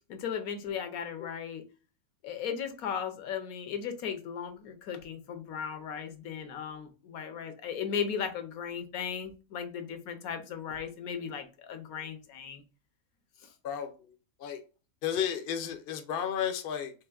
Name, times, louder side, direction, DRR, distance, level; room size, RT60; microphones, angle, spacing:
voice 1, 0.1-1.6 2.2-12.6 13.4-13.5, left 7 dB, 75° left, 7 dB, 1.2 m, -36 dB
voice 2, 13.6-14.1 14.4-14.6 15.0-16.9, left 9 dB, 55° left, 7 dB, 0.7 m, -33 dB
4.4 x 3.3 x 2.3 m, 0.34 s
omnidirectional pair, 1.5 m